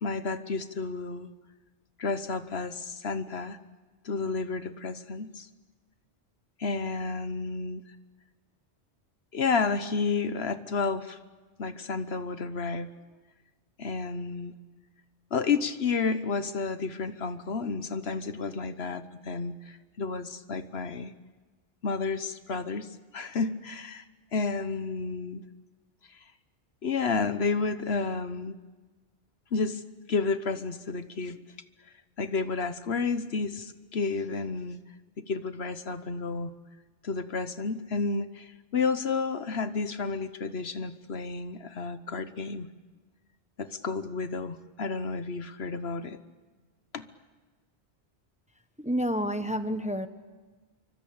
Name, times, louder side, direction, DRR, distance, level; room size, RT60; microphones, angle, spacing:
voice 1, 0.0-1.3 2.0-3.6 4.0-5.5 6.6-7.8 9.3-11.2 11.6-12.9 13.8-14.5 15.3-21.1 21.8-24.0 24.3-25.4 26.1-26.2 26.8-28.6 29.5-29.8 30.1-31.4 32.2-34.8 35.2-36.5 37.0-42.7 43.6-46.2 46.9-47.1, left 4 dB, 65° left, 11 dB, 1.3 m, -31 dB
voice 2, 48.8-50.1, equal, 5° right, 9 dB, 1.2 m, -29 dB
27.0 x 24.0 x 8.7 m, 1.3 s
omnidirectional pair, 1.1 m